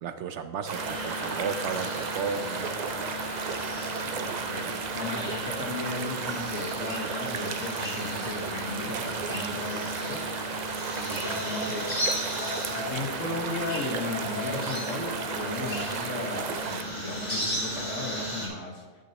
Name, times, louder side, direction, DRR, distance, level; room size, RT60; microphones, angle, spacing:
voice 1, 0.0-2.8, right 5 dB, 65° right, 9 dB, 0.8 m, -33 dB
sound 1, 0.7-18.5, equal, 30° left, 3.2 m, -35 dB
sound 2, 0.7-16.8, right 6 dB, 85° right, 0.3 m, -35 dB
voice 2, 4.1-4.7 4.9-10.3 11.0-11.9 12.7-18.9, left 3 dB, 70° left, 1 dB, 1.8 m, -36 dB
11.0 x 9.9 x 3.0 m, 1.3 s
omnidirectional pair, 1.4 m